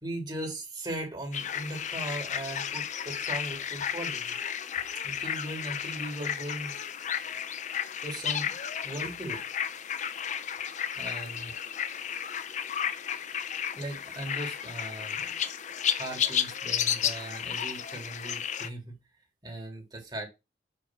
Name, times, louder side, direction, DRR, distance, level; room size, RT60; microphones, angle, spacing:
voice 1, 0.0-4.4 5.0-6.7 8.0-8.5 8.8-9.5 11.0-11.5 13.8-15.4 15.8-19.0 19.4-20.3, right 1 dB, 25° right, 1 dB, 2.8 m, -38 dB
sound 1, 1.3-18.7, left 9 dB, 45° left, 0.5 m, -33 dB
6.5 x 3.7 x 6.1 m, 0.24 s
head